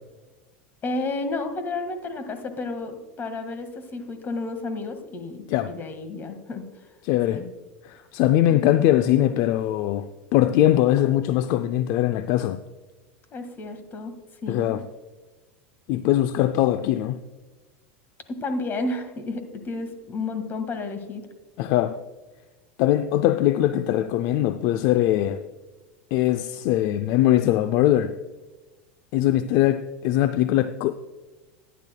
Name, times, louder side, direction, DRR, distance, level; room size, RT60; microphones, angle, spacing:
voice 1, 0.8-6.7 7.3-7.5 13.3-14.1 14.4-14.8 18.4-21.3, left 3 dB, 30° left, 1.7 m, -31 dB
voice 2, 7.0-7.4 7.8-12.6 14.5-14.8 15.9-17.2 21.6-22.0 22.8-25.4 26.1-28.1 29.1-30.9, left 13 dB, 55° left, 0.4 m, -21 dB
14.5 x 10.5 x 2.2 m
hypercardioid pair, 105°, 6 cm